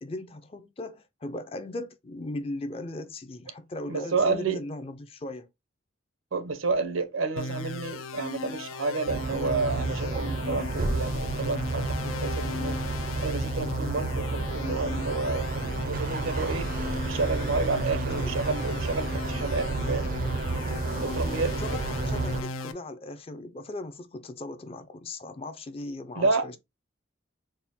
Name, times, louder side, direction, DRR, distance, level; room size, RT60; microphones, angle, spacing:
voice 1, 0.0-5.5 18.2-18.3 21.4-26.6, left 2 dB, 30° left, 0.4 m, -38 dB
voice 2, 3.9-4.6 6.3-12.8 13.2-16.7 17.0-20.1 21.0-21.5 26.2-26.5, right 3 dB, 85° right, 0.7 m, -30 dB
sound 1, 7.4-22.7, left 3 dB, 85° left, 0.5 m, -37 dB
sound 2, 9.1-22.4, right 3 dB, 45° right, 0.4 m, -31 dB
4.3 x 2.1 x 3.5 m
head